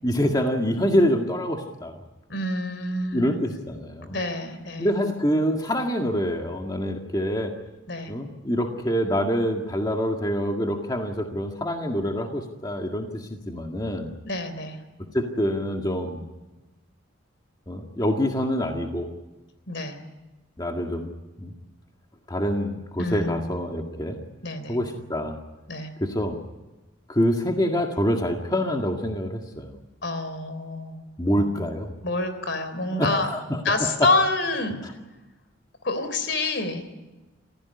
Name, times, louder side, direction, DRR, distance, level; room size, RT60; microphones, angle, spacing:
voice 1, 0.0-2.0 3.1-4.1 4.8-7.5 8.1-14.1 15.1-16.2 17.7-19.1 20.6-21.1 21.4-21.5 22.3-24.2 24.7-25.4 26.0-26.4 27.1-29.7 31.2-31.9 33.0-33.9, equal, 20° left, 2 dB, 1.9 m, -26 dB
voice 2, 2.3-3.3 4.1-4.9 7.9-8.1 14.2-14.8 19.7-20.0 23.0-23.5 24.4-24.8 25.7-25.9 30.0-31.0 31.4-31.7 32.0-33.3 33.6-34.8 35.8-36.8, left 2 dB, 65° left, 10 dB, 3.5 m, -27 dB
26.0 x 16.0 x 9.6 m, 1.1 s
head